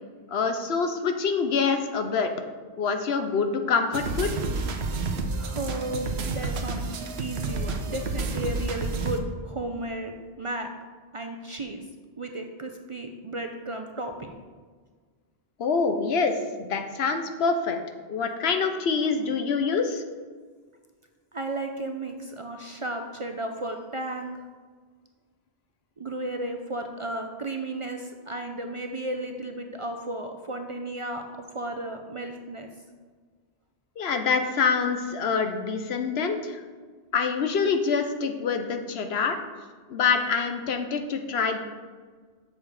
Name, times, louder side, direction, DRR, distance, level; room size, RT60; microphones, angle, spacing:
voice 1, 0.3-2.3 2.8-4.4 15.6-17.8 18.1-20.0 34.0-36.6 37.1-39.4 39.9-41.6, left 5 dB, 75° left, 6 dB, 1.0 m, -26 dB
sound 1, 3.9-9.2, right 3 dB, 90° right, 1.0 m, -30 dB
voice 2, 5.3-6.8 7.2-10.7 11.1-11.8 12.2-14.4 21.3-24.4 26.0-31.2 31.5-32.7, right 1 dB, 40° right, 4 dB, 0.5 m, -34 dB
7.2 x 6.7 x 4.8 m, 1.5 s
omnidirectional pair, 1.1 m